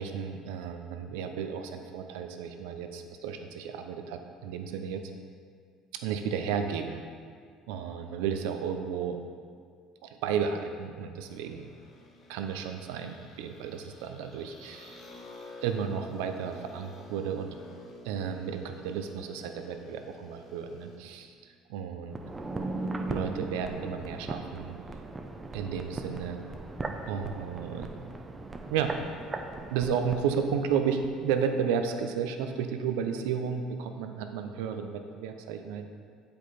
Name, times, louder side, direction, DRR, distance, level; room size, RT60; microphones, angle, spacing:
voice 1, 0.0-5.1 5.9-7.0 7.7-9.2 10.0-11.7 12.3-15.0 15.6-17.6 18.0-22.2 23.1-24.8 25.5-26.4 27.1-27.9 28.7-28.9 29.7-35.9, right 7 dB, 80° right, 6 dB, 0.6 m, -33 dB
sound 1, 11.2-21.0, left 1 dB, 55° left, 1.1 m, -50 dB
sound 2, 22.1-31.1 31.4-31.5, right 2 dB, 20° right, 0.7 m, -38 dB
7.5 x 5.2 x 4.3 m, 2.1 s
supercardioid pair, 75°, 0 cm